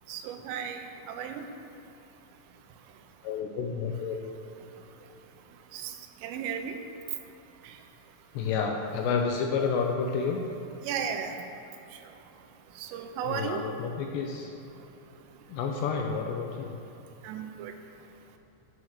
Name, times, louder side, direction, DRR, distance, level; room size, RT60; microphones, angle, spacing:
voice 1, 0.1-1.4 5.7-5.9 6.2-6.8 7.6-7.8 10.8-11.4 12.8-13.6 17.2-17.7, right 7 dB, 85° right, 6 dB, 3.4 m, -35 dB
voice 2, 3.2-4.2 8.3-10.4 13.3-14.5 15.5-16.7, left 5 dB, 75° left, 2 dB, 2.7 m, -30 dB
9.6 x 8.1 x 7.2 m, 2.8 s
omnidirectional pair, 5.7 m